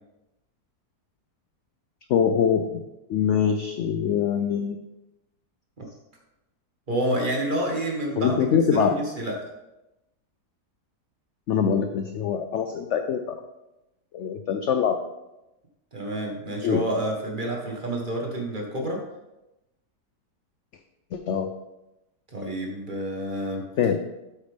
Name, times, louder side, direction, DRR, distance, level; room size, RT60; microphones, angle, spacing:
voice 1, 2.1-2.8 3.1-4.8 8.2-9.0 11.5-13.4 14.1-15.0 16.6-16.8 21.1-21.5 23.8-24.0, left 7 dB, 70° left, 6 dB, 0.7 m, -23 dB
voice 2, 6.9-8.4 8.7-9.5 15.9-19.0 22.3-23.6, right 1 dB, 30° right, 0 dB, 1.4 m, -29 dB
8.3 x 8.2 x 3.5 m, 0.96 s
omnidirectional pair, 1.8 m